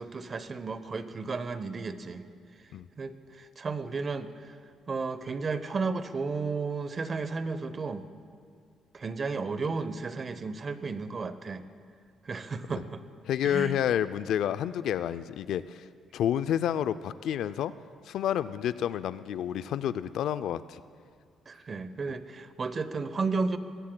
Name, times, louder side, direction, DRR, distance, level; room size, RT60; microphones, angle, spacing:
voice 1, 0.0-2.2 2.6-2.7 3.0-4.5 4.9-8.0 8.9-11.6 12.2-13.0 13.4-13.8 21.5-23.6, right 4 dB, 40° right, 12 dB, 0.8 m, -33 dB
voice 2, 13.3-15.9 16.1-17.7 18.0-20.8, left 10 dB, 80° left, 14 dB, 0.4 m, -29 dB
21.0 x 17.0 x 2.3 m, 2.2 s
cardioid pair, 90°, 0 cm